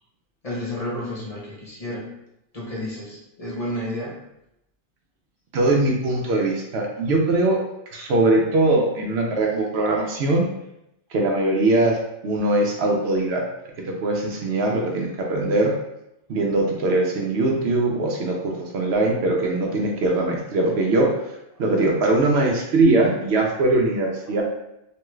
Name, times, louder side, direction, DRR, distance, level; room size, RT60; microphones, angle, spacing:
voice 1, 0.4-2.1 2.5-4.2 6.1-6.2 12.4-12.5, left 1 dB, 35° left, -7 dB, 0.8 m, -31 dB
voice 2, 5.5-7.6 7.9-10.5 11.1-12.0 12.2-13.4 13.9-15.7 16.3-21.1 21.6-24.4, right 2 dB, 70° right, 0 dB, 0.8 m, -21 dB
3.0 x 2.3 x 3.0 m, 0.84 s
omnidirectional pair, 1.2 m